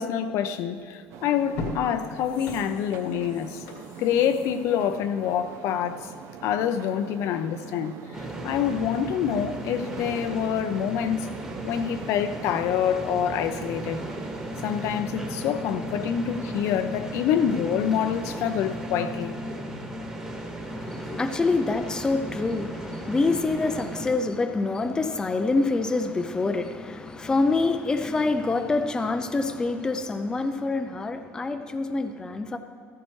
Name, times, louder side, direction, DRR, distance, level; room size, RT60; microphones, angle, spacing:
voice 1, 0.0-3.6 4.0-6.0 6.4-8.0 8.4-11.3 11.6-14.0 14.6-19.4, left 8 dB, 65° left, 0.6 m, -26 dB
sound 1, 0.8-0.9 1.4-6.1 6.5-6.6, left 3 dB, 85° left, 1.7 m, -40 dB
sound 2, 1.1-14.9, right 7 dB, 60° right, 0.7 m, -44 dB
sound 3, 8.1-24.1, right 1 dB, 15° right, 1.5 m, -35 dB
voice 2, 20.6-32.6, left 3 dB, 15° left, 0.5 m, -26 dB
14.5 x 14.0 x 3.2 m
cardioid pair, 150°, 5 cm